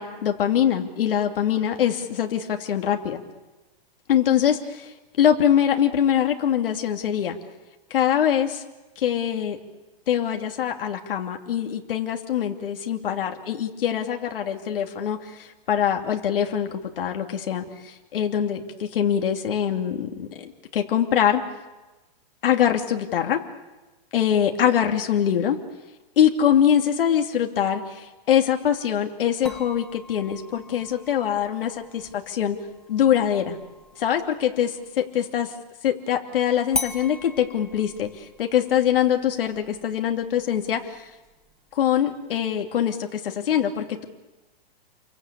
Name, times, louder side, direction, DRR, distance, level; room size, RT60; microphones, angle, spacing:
voice 1, 0.0-3.2 4.1-7.4 7.9-8.6 9.0-9.6 10.1-21.4 22.4-23.4 24.1-25.6 26.2-32.6 32.9-33.6 34.0-35.5 35.8-41.0 41.7-44.0, left 9 dB, 65° left, 3 dB, 2.8 m, -23 dB
sound 1, 29.5-35.0 36.7-41.7, left 3 dB, ahead, 0.8 m, -39 dB
29.5 x 23.5 x 8.5 m, 1.1 s
hypercardioid pair, 170°, 30 cm